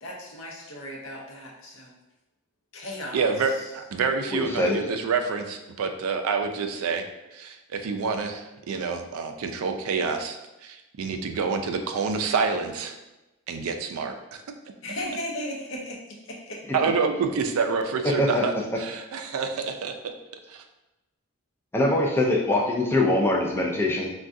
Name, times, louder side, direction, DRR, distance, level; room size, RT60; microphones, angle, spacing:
voice 1, 0.0-2.0 2.7-3.7 14.8-16.0 16.2-16.6, left 1 dB, 60° left, -2 dB, 0.7 m, -36 dB
voice 2, 3.1-7.0 7.3-13.0 13.5-14.4 16.7-20.1 20.5-20.6, right 5 dB, 80° right, 6 dB, 0.3 m, -28 dB
voice 3, 4.3-4.8 18.2-18.4 21.7-24.1, left 1 dB, 10° left, -2 dB, 0.4 m, -23 dB
3.5 x 2.3 x 2.5 m, 1.0 s
head